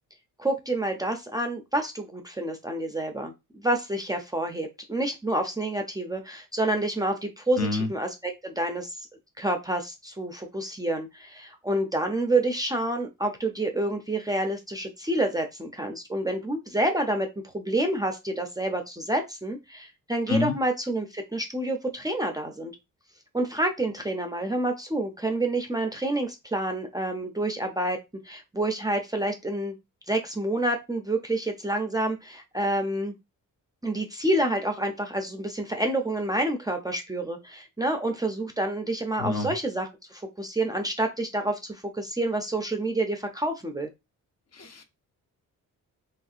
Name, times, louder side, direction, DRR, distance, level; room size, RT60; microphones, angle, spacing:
voice 1, 0.4-9.1 9.4-22.7 23.3-28.0 28.2-29.7 30.1-33.1 33.8-43.9, right 1 dB, 10° right, 0.5 m, -28 dB
voice 2, 7.6-7.9 20.3-20.5 39.2-39.5 44.5-44.8, left 3 dB, 50° left, 0.7 m, -27 dB
3.1 x 2.7 x 2.4 m
cardioid pair, 90°, 34 cm